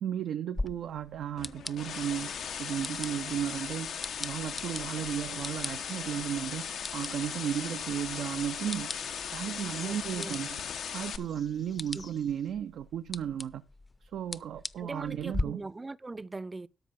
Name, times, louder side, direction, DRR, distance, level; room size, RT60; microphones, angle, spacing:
voice 1, 0.0-2.3 2.6-6.7 6.9-8.9 9.3-10.6 10.9-13.6 14.0-15.6, right 9 dB, 90° right, 0.5 m, -34 dB
sound 1, 0.5-15.4, left 2 dB, 30° left, 0.6 m, -42 dB
sound 2, 1.4-11.2, left 7 dB, 85° left, 1.0 m, -38 dB
sound 3, 7.4-12.5, left 5 dB, 65° left, 1.2 m, -55 dB
voice 2, 9.8-10.4 11.9-12.1 14.8-16.7, right 3 dB, 35° right, 0.6 m, -41 dB
13.0 x 5.3 x 5.8 m
supercardioid pair, 45°, 0 cm